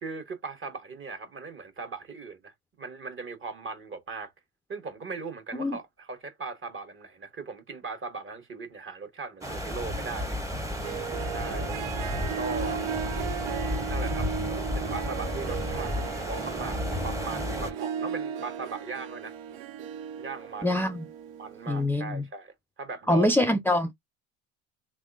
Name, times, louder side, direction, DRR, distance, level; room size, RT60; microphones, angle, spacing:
voice 1, 0.0-4.3 4.7-10.4 11.3-11.8 12.3-12.8 13.9-14.3 14.7-19.3 20.2-20.9 21.4-23.3, right 4 dB, 35° right, 1.3 m, -38 dB
sound 1, 9.4-17.7, left 1 dB, 10° right, 0.9 m, -32 dB
Harp, 10.6-21.8, right 8 dB, 80° right, 0.6 m, -36 dB
voice 2, 20.6-21.1 21.7-22.2 23.1-23.9, left 1 dB, 5° left, 0.4 m, -24 dB
3.4 x 3.2 x 2.4 m
hypercardioid pair, 80°, 33 cm